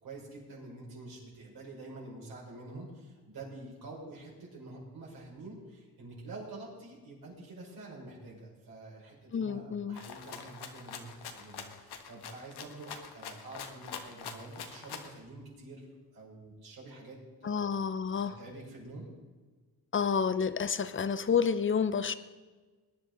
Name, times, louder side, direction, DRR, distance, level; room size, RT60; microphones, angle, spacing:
voice 1, 0.0-17.6 18.2-19.1, right 2 dB, 70° right, -4 dB, 5.6 m, -47 dB
voice 2, 9.3-10.0 17.4-18.4 19.9-22.1, left 6 dB, 30° left, 13 dB, 0.7 m, -29 dB
Rattle (instrument), 9.9-15.2, left 6 dB, 85° left, 1.5 m, -44 dB
21.0 x 10.5 x 4.0 m, 1.3 s
wide cardioid pair, 130°, 38 cm